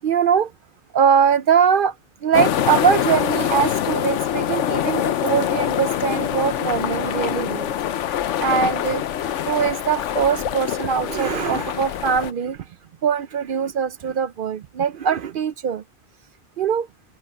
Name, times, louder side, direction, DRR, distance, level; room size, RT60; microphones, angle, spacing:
voice 1, 0.0-0.5 0.9-1.9 2.2-12.6 13.0-15.8 16.6-16.9, right 7 dB, 60° right, 0.6 m, -22 dB
sound 1, 2.3-12.3, left 10 dB, 80° left, 1.0 m, -24 dB
open air
omnidirectional pair, 1.2 m